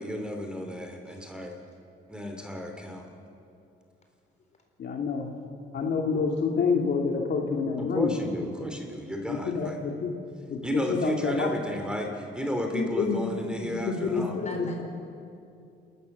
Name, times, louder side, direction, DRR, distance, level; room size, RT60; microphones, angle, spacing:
voice 1, 0.0-1.6 2.1-3.1 7.8-9.8 10.6-14.4, equal, 5° right, 3 dB, 3.0 m, -33 dB
voice 2, 4.8-5.3 5.7-8.1 9.3-10.1 10.5-11.5 12.7-13.3 13.6-14.8, left 5 dB, 60° left, 1 dB, 2.2 m, -28 dB
voice 3, 14.1-14.8, left 2 dB, 35° left, 3 dB, 4.4 m, -40 dB
28.5 x 13.5 x 6.8 m, 2.5 s
cardioid pair, 90°, 20 cm